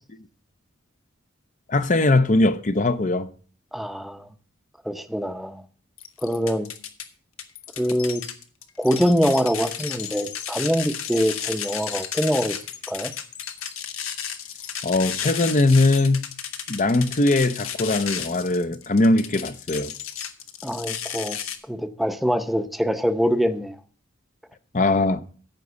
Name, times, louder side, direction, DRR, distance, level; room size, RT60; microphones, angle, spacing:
voice 1, 1.7-3.3 14.8-16.3 16.7-19.9 24.7-25.2, left 2 dB, 40° left, 0.8 m, -20 dB
voice 2, 3.7-4.3 4.8-5.6 6.2-6.7 7.8-8.2 8.8-12.6 12.9-13.1 20.6-21.4 21.7-23.8, equal, ahead, 0.8 m, -24 dB
sound 1, 6.0-7.1 7.4-21.6, left 9 dB, 85° left, 1.3 m, -33 dB
14.5 x 5.3 x 6.9 m
head